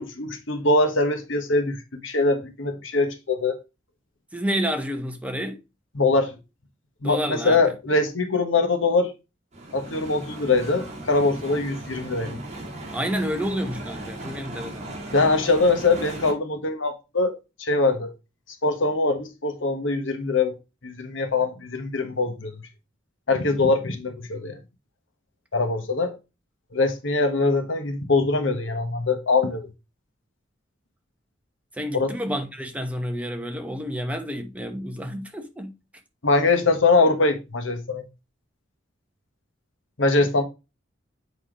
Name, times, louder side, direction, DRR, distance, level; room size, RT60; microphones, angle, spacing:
voice 1, 0.0-3.6 5.9-6.3 7.0-9.1 9.7-12.4 15.1-18.1 18.6-20.5 20.8-22.5 23.3-24.6 25.5-26.1 26.7-29.7 31.9-32.1 36.2-38.0 40.0-40.4, left 3 dB, 75° left, 1.2 m, -23 dB
voice 2, 4.3-5.6 7.0-7.6 12.9-14.9 31.7-35.7, equal, 5° right, 0.9 m, -29 dB
sound 1, 9.5-16.3, right 1 dB, 35° right, 2.3 m, -37 dB
7.9 x 3.2 x 5.0 m
head